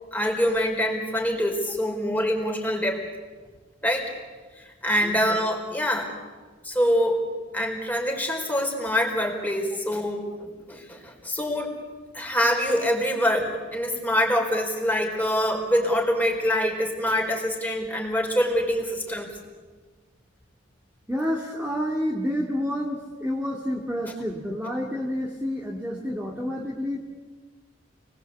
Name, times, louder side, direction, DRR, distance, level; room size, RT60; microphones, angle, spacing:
voice 1, 0.1-3.0 3.8-4.1 4.6-6.1 6.6-7.2 7.5-11.7 12.1-19.3, equal, 10° left, 2 dB, 4.5 m, -25 dB
voice 2, 21.1-27.0, equal, 10° right, -2 dB, 2.2 m, -29 dB
29.0 x 20.5 x 8.4 m, 1.4 s
head